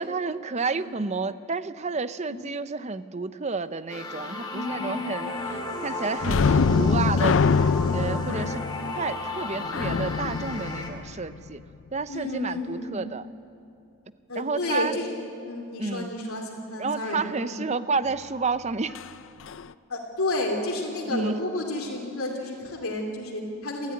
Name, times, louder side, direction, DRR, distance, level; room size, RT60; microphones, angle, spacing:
voice 1, 0.0-5.3 5.8-7.4 7.9-8.6 8.9-11.6 11.9-13.3 14.4-14.9 15.8-16.1 16.8-19.0 21.1-21.4, right 4 dB, 30° right, 13 dB, 0.6 m, -30 dB
voice 2, 0.6-0.9 2.3-2.5 4.5-5.5 7.8-8.9 12.1-13.0 14.3-15.1 15.5-17.6 19.9-23.9, left 2 dB, 75° left, -1 dB, 2.7 m, -32 dB
sound 1, 3.9-10.9, left 2 dB, 20° left, 2.4 m, -34 dB
sound 2, 6.2-11.6 18.9-19.1 19.5-19.6, left 5 dB, 55° left, 0.4 m, -24 dB
27.5 x 14.0 x 9.5 m, 2.6 s
head